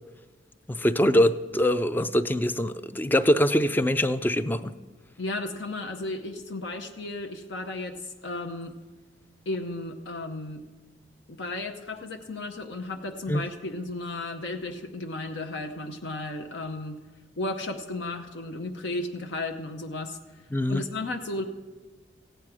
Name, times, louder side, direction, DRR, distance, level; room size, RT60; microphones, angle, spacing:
voice 1, 0.7-4.7 13.3-13.4 20.5-20.8, equal, 10° left, 12 dB, 0.4 m, -23 dB
voice 2, 5.2-8.0 8.2-8.8 9.5-10.6 11.3-17.0 17.4-20.2 20.7-21.4, left 2 dB, 75° left, 5 dB, 0.8 m, -34 dB
15.5 x 9.1 x 4.8 m, 1.3 s
head